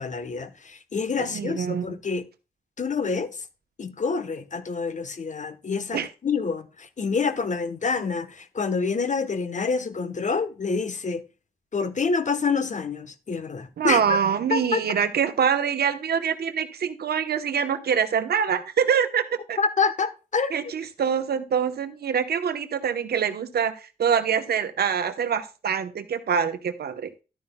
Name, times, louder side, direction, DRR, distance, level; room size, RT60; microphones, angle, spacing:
voice 1, 0.0-2.2 2.8-3.4 3.8-11.2 11.7-14.2 14.5-14.9 19.6-20.5, left 4 dB, 50° left, 1.0 m, -27 dB
voice 2, 1.2-1.9 5.9-6.1 13.8-19.6 20.5-27.1, right 7 dB, 80° right, 0.9 m, -25 dB
11.5 x 9.7 x 2.2 m
cardioid pair, 70°, 16 cm